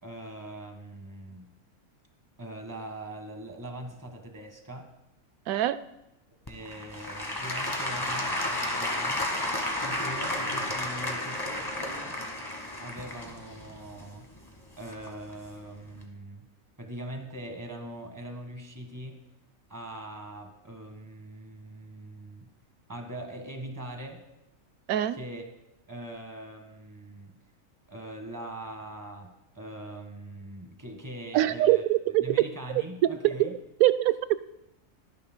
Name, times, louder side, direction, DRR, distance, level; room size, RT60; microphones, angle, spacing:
voice 1, 0.0-1.5 2.4-4.9 6.5-9.2 9.8-12.1 12.8-14.3 14.8-16.4 16.8-19.2 19.7-22.5 22.9-24.2 25.1-25.5 25.9-27.3 27.9-31.8 32.2-33.6, right 1 dB, 15° right, 3 dB, 1.5 m, -42 dB
voice 2, 5.5-5.8 24.9-25.2 31.3-32.3 33.1-33.5 33.8-34.4, right 14 dB, 85° right, 13 dB, 1.0 m, -24 dB
Applause / Crowd, 6.5-15.3 16.0-16.1, left 1 dB, 15° left, 1.3 m, -32 dB
23.5 x 9.8 x 2.2 m, 0.91 s
omnidirectional pair, 1.5 m